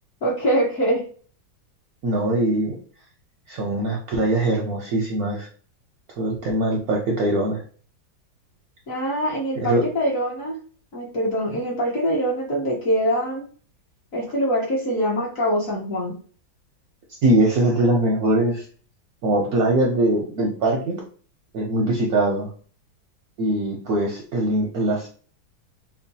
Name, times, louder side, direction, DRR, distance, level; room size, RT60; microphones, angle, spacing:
voice 1, 0.2-1.0 8.9-10.5 10.9-13.4 14.1-16.2, equal, 50° left, -4 dB, 1.3 m, -23 dB
voice 2, 2.0-2.8 3.5-5.5 6.2-7.6 9.6-9.8 17.2-18.6 19.2-21.0 21.5-22.5 23.4-25.1, right 1 dB, 65° right, -1 dB, 0.9 m, -22 dB
4.4 x 2.2 x 2.7 m, 0.43 s
omnidirectional pair, 2.1 m